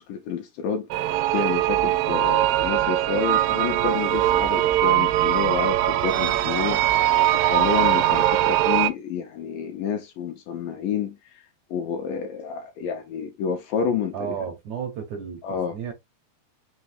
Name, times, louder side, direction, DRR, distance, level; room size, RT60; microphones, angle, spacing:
voice 1, 0.0-6.9 7.3-11.2 11.7-14.1 15.4-15.8, left 7 dB, 75° left, 2.1 m, -29 dB
sound 1, 0.9-8.9, right 14 dB, 80° right, 2.2 m, -21 dB
voice 2, 14.1-15.9, right 8 dB, 60° right, 2.1 m, -33 dB
5.8 x 3.0 x 2.9 m
omnidirectional pair, 4.4 m